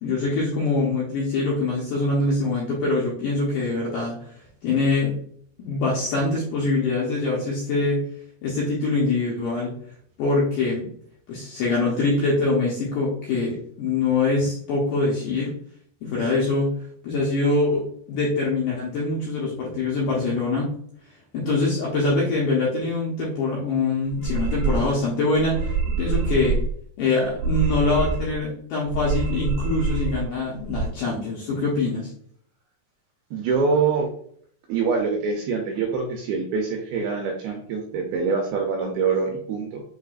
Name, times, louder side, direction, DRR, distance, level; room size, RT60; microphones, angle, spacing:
voice 1, 0.0-4.2 4.6-5.1 5.6-8.1 8.4-9.7 10.2-10.9 11.3-15.5 16.0-16.7 17.0-20.7 21.3-26.6 27.0-32.1, left 3 dB, 80° left, -5 dB, 2.0 m, -24 dB
sound 1, 24.1-25.0 25.3-26.7 27.3-28.4 28.8-30.3 30.5-30.9, right 4 dB, 60° right, 1.7 m, -26 dB
voice 2, 33.3-34.1 34.7-39.8, right 5 dB, 80° right, 2 dB, 2.3 m, -24 dB
6.6 x 3.3 x 2.4 m, 0.63 s
omnidirectional pair, 5.0 m